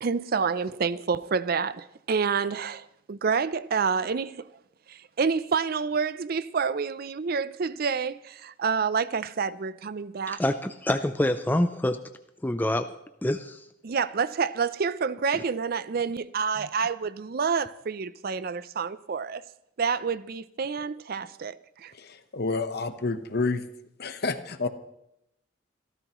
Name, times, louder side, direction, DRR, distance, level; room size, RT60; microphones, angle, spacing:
voice 1, 0.0-4.5 4.9-10.4 13.8-19.4 19.8-21.9, right 5 dB, 50° right, 0.5 m, -28 dB
voice 2, 10.3-12.0 12.4-13.0 13.2-13.7 15.3-15.4, left 1 dB, 10° left, 0.4 m, -26 dB
voice 3, 21.9-23.6 24.0-24.7, left 3 dB, 50° left, 1.0 m, -29 dB
26.0 x 14.0 x 3.0 m
head